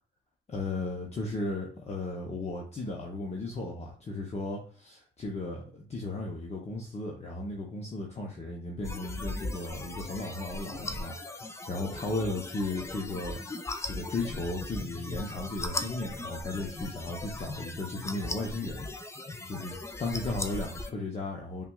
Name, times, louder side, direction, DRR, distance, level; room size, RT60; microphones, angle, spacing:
voice 1, 0.5-18.9 19.5-21.7, left 2 dB, 35° left, -1 dB, 0.8 m, -35 dB
sound 1, 8.8-20.9, left 2 dB, 15° left, 0.4 m, -38 dB
5.6 x 2.3 x 2.3 m, 0.43 s
cardioid pair, 90°, 20 cm